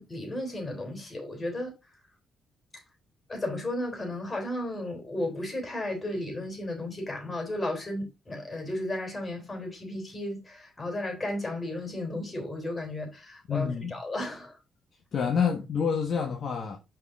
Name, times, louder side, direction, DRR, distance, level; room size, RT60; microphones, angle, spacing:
voice 1, 0.0-1.7 3.3-14.6, left 1 dB, 25° left, 3.3 m, -34 dB
voice 2, 13.5-13.9 15.1-16.8, left 6 dB, 55° left, 1.2 m, -27 dB
6.0 x 4.7 x 3.5 m
cardioid pair, 90°, 0 cm